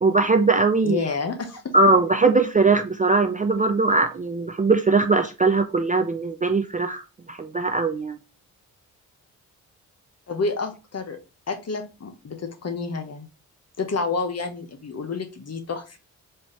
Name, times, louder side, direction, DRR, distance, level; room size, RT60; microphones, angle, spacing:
voice 1, 0.0-1.1 1.7-7.0 7.3-8.2, right 3 dB, 20° right, 6 dB, 0.4 m, -20 dB
voice 2, 0.8-1.7 10.3-11.2 11.5-13.3 13.8-16.0, left 4 dB, 35° left, 7 dB, 1.0 m, -29 dB
4.4 x 2.6 x 3.0 m, 0.30 s
hypercardioid pair, 40°, 42 cm